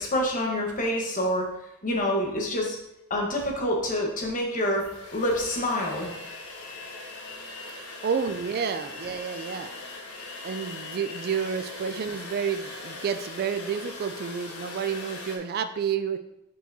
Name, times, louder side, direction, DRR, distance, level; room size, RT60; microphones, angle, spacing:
voice 1, 0.0-1.5 1.8-2.8 3.1-6.1, left 1 dB, 40° left, 0 dB, 1.2 m, -27 dB
sound 1, 4.1-4.2 4.6-15.4, left 2 dB, 85° left, 1.2 m, -40 dB
voice 2, 8.0-9.7 10.4-16.2, right 6 dB, 45° right, 9 dB, 0.3 m, -30 dB
7.8 x 4.7 x 2.7 m, 0.84 s
head